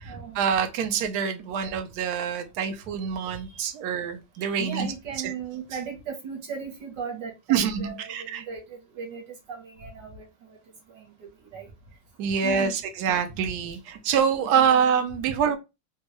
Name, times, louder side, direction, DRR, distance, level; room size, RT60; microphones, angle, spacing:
voice 1, 0.1-4.9 5.2-5.3 7.5-8.4 12.2-15.6, right 7 dB, 85° right, 0.8 m, -26 dB
voice 2, 4.4-9.2 9.5-10.2 10.9-11.0 11.5-11.7 12.4-12.7 14.5-14.8, right 6 dB, 65° right, 1.4 m, -37 dB
3.5 x 2.2 x 3.0 m
omnidirectional pair, 2.3 m